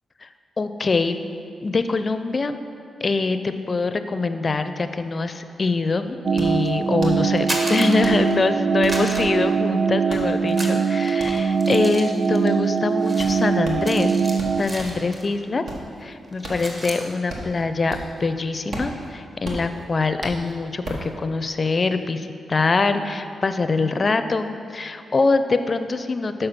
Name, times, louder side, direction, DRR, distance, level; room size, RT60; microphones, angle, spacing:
voice 1, 0.6-1.2 1.6-2.6 3.0-14.1 14.6-15.6 16.0-26.5, left 3 dB, 45° left, 10 dB, 0.5 m, -24 dB
sound 1, 5.4-5.5 5.8-15.1 15.4-18.3 18.5-21.1, right 1 dB, 70° right, 1.3 m, -36 dB
sound 2, 6.2-14.6, right 5 dB, 55° right, 0.3 m, -22 dB
sound 3, 7.3-8.5 8.8-10.1 10.5-15.4 15.7-15.9 16.2-17.1, right 1 dB, 35° right, 1.4 m, -34 dB
6.8 x 5.5 x 5.7 m, 2.5 s
cardioid pair, 60°, 0 cm